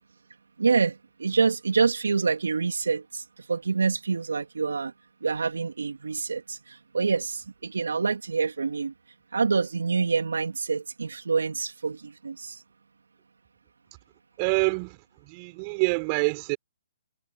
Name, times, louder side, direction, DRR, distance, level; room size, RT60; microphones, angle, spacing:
voice 1, 0.6-4.9 5.2-8.9 9.3-12.6, right 4 dB, 85° right, 3.3 m, -26 dB
voice 2, 14.4-16.6, right 34 dB, 35° right, 6.1 m, -26 dB
hypercardioid pair, 140°, 0 cm